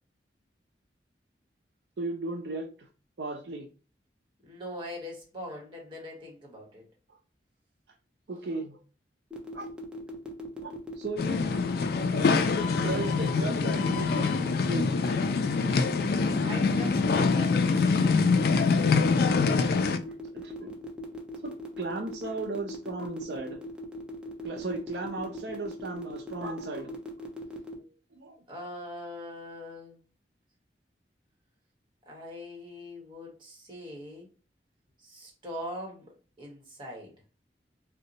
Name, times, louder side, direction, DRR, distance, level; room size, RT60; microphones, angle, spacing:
voice 1, 2.0-2.9 3.2-3.7 8.3-8.8 9.5-9.7 10.6-11.5 12.1-14.3 14.7-14.9 19.0-19.2 20.3-20.7 21.4-23.6 24.4-26.9 28.1-28.4, right 3 dB, 75° right, 3 dB, 0.5 m, -36 dB
voice 2, 4.4-6.8 16.4-18.1 28.5-30.0 32.1-34.3 35.0-37.1, equal, 30° right, -2 dB, 1.1 m, -42 dB
sound 1, 9.3-27.7, left 1 dB, 5° right, 0.5 m, -40 dB
sound 2, 11.2-20.0, left 4 dB, 60° left, 0.3 m, -25 dB
2.7 x 2.1 x 3.9 m, 0.34 s
head